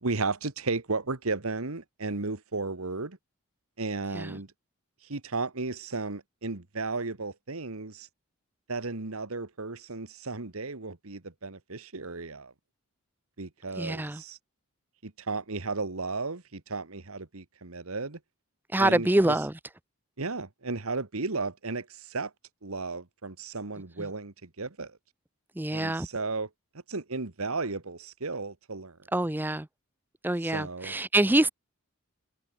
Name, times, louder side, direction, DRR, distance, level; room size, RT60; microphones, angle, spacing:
voice 1, 0.0-3.2 3.8-4.5 5.0-8.1 8.7-12.5 13.4-14.4 15.0-18.2 18.8-19.4 20.2-22.3 22.6-25.0 25.7-26.5 26.9-29.0 30.4-31.0, right 3 dB, 75° right, 1.5 m, -34 dB
voice 2, 13.8-14.2 18.7-19.5 24.0-24.1 25.6-26.1 29.1-29.7 30.2-31.5, right 1 dB, 10° right, 0.5 m, -25 dB
head